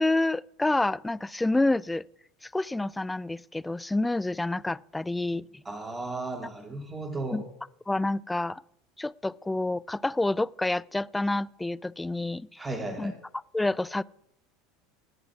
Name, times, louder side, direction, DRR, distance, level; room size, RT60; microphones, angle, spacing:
voice 1, 0.0-2.0 2.4-5.5 7.3-7.4 7.9-8.6 9.0-12.7 13.0-13.1 13.5-14.0, left 2 dB, 10° left, 0.3 m, -28 dB
voice 2, 5.6-7.4 12.6-13.2, right 2 dB, 20° right, 2.5 m, -35 dB
18.5 x 7.5 x 4.7 m
hypercardioid pair, 85°, 0 cm